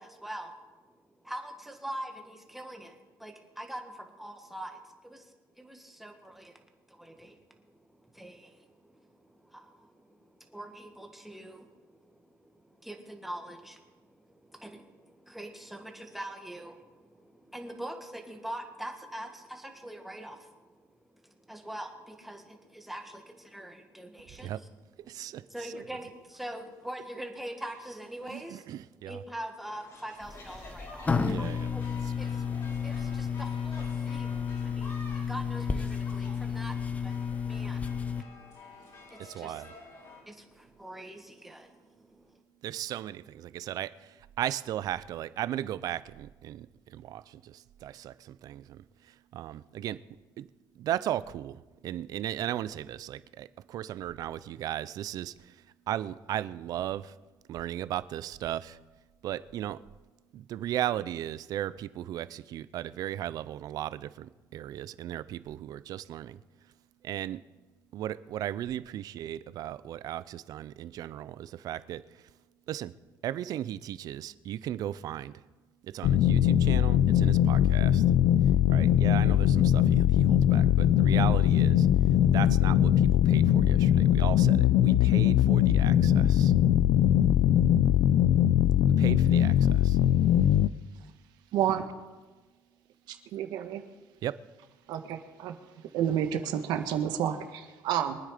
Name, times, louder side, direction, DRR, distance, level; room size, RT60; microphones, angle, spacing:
voice 1, 0.0-24.7 25.1-31.8 32.1-39.7 40.0-42.4, right 1 dB, ahead, 1.9 m, -44 dB
voice 2, 25.1-25.4 25.7-25.8 28.3-29.2 31.3-31.7 39.2-39.7 42.6-48.8 49.3-50.0 50.4-50.5 50.8-55.6 55.9-57.1 57.5-58.8 59.2-59.8 60.3-66.4 67.0-67.4 67.9-72.0 72.7-72.9 73.2-75.3 75.8-78.0 78.7-81.9 82.3-86.5 88.8-90.0 94.2-94.4, right 12 dB, 60° right, 0.6 m, -36 dB
sound 1, 29.6-40.2, left 3 dB, 55° left, 6.1 m, -49 dB
sound 2, 30.2-38.2, left 6 dB, 20° left, 0.7 m, -32 dB
sound 3, 76.0-90.7, left 11 dB, 70° left, 0.5 m, -22 dB
voice 3, 91.5-91.8 93.1-93.8 94.9-95.5 95.9-98.2, right 10 dB, 80° right, 1.4 m, -30 dB
24.0 x 9.5 x 5.1 m
cardioid pair, 125°, 7 cm